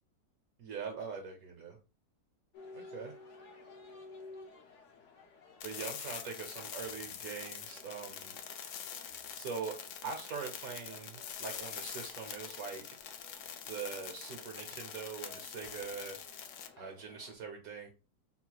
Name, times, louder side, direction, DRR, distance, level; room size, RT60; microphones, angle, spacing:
voice 1, 0.6-1.8 2.7-3.1 5.6-8.4 9.3-9.8 10.0-12.8 13.7-16.2 16.8-17.9, right 5 dB, 65° right, 4 dB, 1.1 m, -42 dB
sound 1, 2.5-17.4, left 3 dB, 55° left, 1.0 m, -56 dB
sound 2, 5.6-16.7, left 8 dB, 75° left, 0.7 m, -45 dB
3.9 x 2.2 x 4.5 m, 0.33 s
omnidirectional pair, 1.8 m